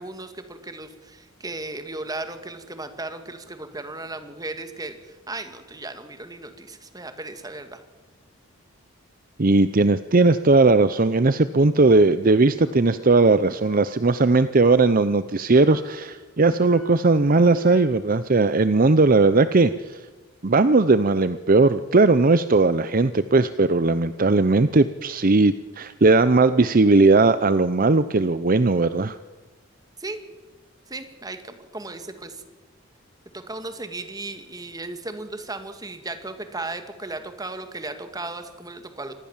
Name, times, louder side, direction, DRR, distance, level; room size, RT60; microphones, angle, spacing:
voice 1, 0.0-7.8 30.0-30.2 30.9-32.4 33.3-39.1, right 2 dB, 20° right, 8 dB, 2.1 m, -36 dB
voice 2, 9.4-20.0 20.4-29.2, right 3 dB, 45° right, 13 dB, 0.7 m, -18 dB
Percussion, 10.6-11.3 11.6-13.4 13.6-14.3 14.6-15.1 15.6-17.2 17.6-18.3, left 1 dB, 75° left, 6.3 m, -47 dB
26.0 x 19.0 x 7.3 m, 1.2 s
head